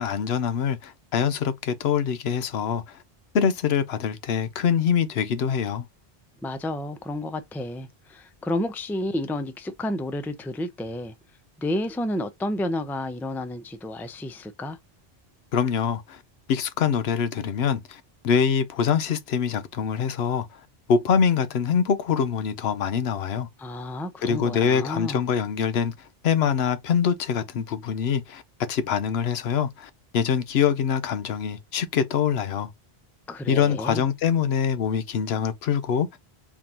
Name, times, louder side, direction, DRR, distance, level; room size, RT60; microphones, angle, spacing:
voice 1, 0.0-3.0 3.3-5.8 15.5-16.2 16.5-20.5 20.9-23.5 24.2-25.9 26.2-28.4 28.7-32.7 33.5-36.2, left 7 dB, 85° left, 0.9 m, -24 dB
voice 2, 6.4-11.1 11.6-14.8 23.6-25.2 33.3-34.0, left 1 dB, 5° left, 0.4 m, -31 dB
3.6 x 2.9 x 3.7 m
omnidirectional pair, 1.0 m